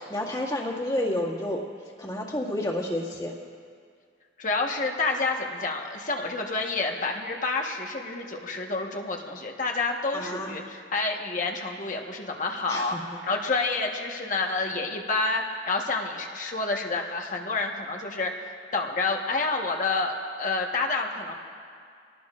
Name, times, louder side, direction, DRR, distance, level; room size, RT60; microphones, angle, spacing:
voice 1, 0.0-1.6 2.0-3.3 10.1-10.6 12.7-13.2, left 1 dB, 20° left, -3 dB, 2.0 m, -30 dB
voice 2, 4.4-13.0 13.2-18.3 18.7-21.3, left 3 dB, 45° left, 1 dB, 1.3 m, -28 dB
25.5 x 18.5 x 2.5 m, 2.2 s
head